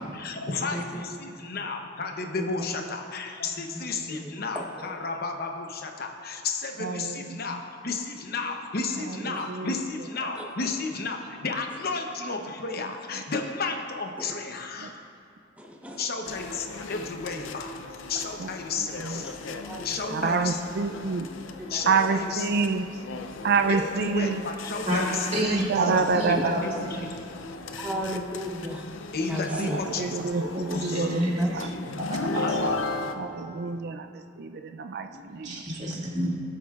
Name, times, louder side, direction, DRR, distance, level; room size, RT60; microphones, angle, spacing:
voice 1, 0.0-15.0 16.0-17.8 18.1-19.4 19.8-20.6 21.7-22.6 23.7-25.2 26.3-27.1 29.1-30.2 30.9-31.0 32.4-32.9, left 4 dB, 55° left, 4 dB, 0.9 m, -33 dB
voice 2, 0.6-1.2 2.3-2.7 3.6-4.6 9.3-9.5 10.4-10.5 14.2-14.3 15.6-16.0 19.2-19.3 19.7-20.3 21.1-21.2 21.6-22.2 27.7-28.9 29.3-29.9 30.8-31.7, equal, 10° right, 0 dB, 1.0 m, -34 dB
voice 3, 6.8-7.6 9.1-9.8 10.2-10.3 14.8-14.9 18.4-18.5 19.0-19.6 20.1-21.3 21.9-22.9 23.4-24.4 25.4-26.6 29.6-31.7 33.2-35.6 35.9-36.0, right 4 dB, 60° right, 7 dB, 0.4 m, -28 dB
sound 1, 16.2-33.1, left 3 dB, 90° left, 0.5 m, -38 dB
voice 4, 25.3-27.1 29.5-30.0 30.4-31.5 32.0-32.8 33.3-33.8 35.1-36.4, equal, 40° right, -5 dB, 2.2 m, -30 dB
19.5 x 7.9 x 2.4 m, 2.4 s
head